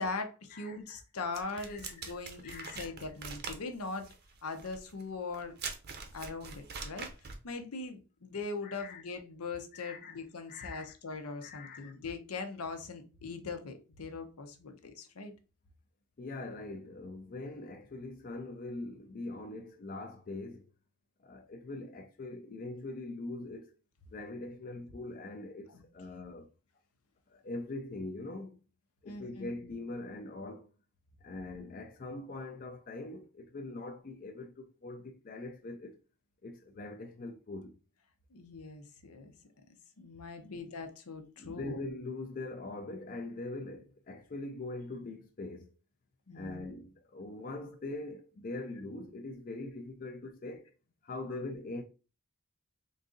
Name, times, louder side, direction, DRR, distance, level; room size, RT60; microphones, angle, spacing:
voice 1, 0.0-4.1 4.4-5.6 6.1-15.3 25.7-25.8 26.1-26.2 29.0-29.7 38.3-39.3 40.0-41.8 46.3-46.7, left 3 dB, 80° left, 0.7 m, -41 dB
sound 1, 1.3-7.5, right 5 dB, 45° right, 0.6 m, -43 dB
voice 2, 1.6-2.0 2.4-2.9 8.6-9.0 9.7-10.2 10.5-11.0 11.4-12.0 16.2-20.7 21.2-23.7 24.1-26.5 27.3-28.6 29.0-30.7 31.2-35.9 36.4-37.7 40.4-40.6 41.4-45.7 46.3-50.7 51.0-51.8, left 2 dB, 40° left, 0.4 m, -42 dB
3.9 x 2.6 x 3.7 m
head